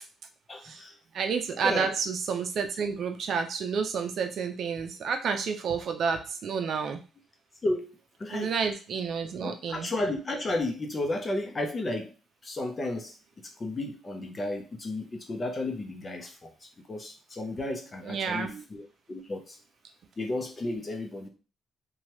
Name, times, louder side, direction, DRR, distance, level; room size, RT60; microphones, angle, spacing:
voice 1, 0.5-0.9 1.6-1.9 7.6-7.9 8.2-8.5 9.4-12.1 12.4-13.1 13.6-16.5 16.9-19.6 20.2-21.3, left 2 dB, 30° left, 4 dB, 0.7 m, -33 dB
voice 2, 1.1-7.0 8.3-9.9 18.0-18.6, right 6 dB, 65° right, 6 dB, 0.5 m, -30 dB
2.9 x 2.3 x 3.0 m, 0.34 s
cardioid pair, 90°, 0 cm